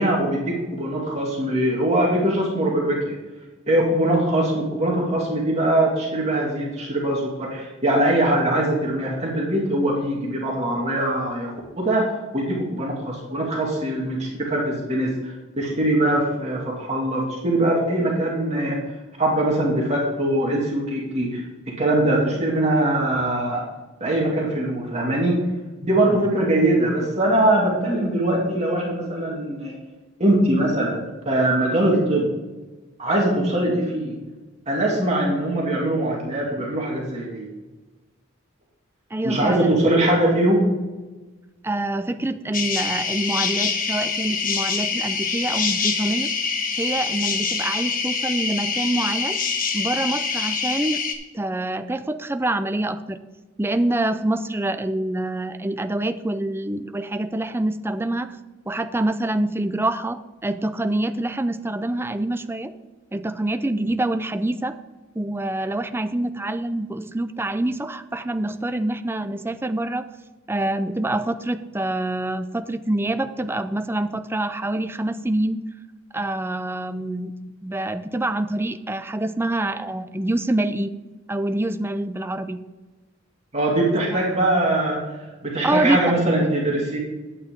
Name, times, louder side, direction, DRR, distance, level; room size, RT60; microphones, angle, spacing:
voice 1, 0.0-3.1 3.7-18.8 19.2-23.6 24.0-25.4 25.8-29.8 30.2-32.3 33.0-34.2 34.7-37.5 39.2-40.7 83.5-85.0 85.4-87.0, right 1 dB, 35° right, -3 dB, 2.4 m, -22 dB
voice 2, 39.1-39.7 41.6-46.3 46.8-49.4 49.7-51.0 51.3-53.2 53.6-58.4 58.7-62.7 63.1-64.8 65.2-70.1 70.5-75.6 76.1-77.3 77.6-80.9 81.3-82.6 85.6-86.0, right 1 dB, 10° right, 10 dB, 0.5 m, -26 dB
sound 1, 42.5-51.1, left 5 dB, 45° left, 1.2 m, -25 dB
10.5 x 8.8 x 3.8 m, 1.2 s
head